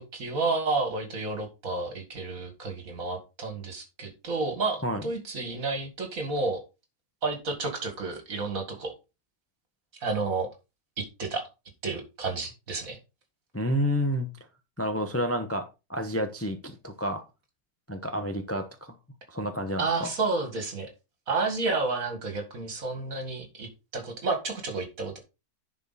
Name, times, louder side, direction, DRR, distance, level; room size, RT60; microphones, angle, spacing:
voice 1, 0.0-6.6 7.2-8.9 10.0-10.5 11.0-11.4 11.8-13.0 19.8-20.9 21.3-25.2, right 3 dB, 60° right, 4 dB, 2.3 m, -31 dB
voice 2, 13.5-14.3 14.8-15.6 15.9-17.2 17.9-18.9 19.3-20.1, equal, 10° left, 6 dB, 0.7 m, -29 dB
10.5 x 4.9 x 4.1 m, 0.28 s
omnidirectional pair, 1.7 m